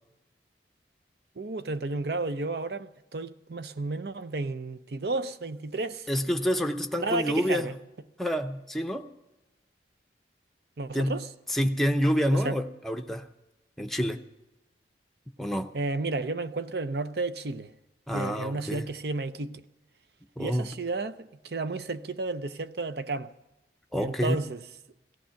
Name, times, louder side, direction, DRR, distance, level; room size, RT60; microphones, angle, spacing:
voice 1, 1.4-6.1 7.0-7.8 10.8-11.3 12.3-12.6 15.7-17.7 18.1-19.6 20.4-23.3 24.0-24.6, right 3 dB, 60° right, 0.6 m, -32 dB
voice 2, 6.1-7.7 8.2-9.1 10.9-11.2 11.5-13.3 13.8-14.2 15.4-15.7 18.1-18.8 20.4-20.7 23.9-24.4, equal, ahead, 0.7 m, -27 dB
17.5 x 14.0 x 5.8 m
head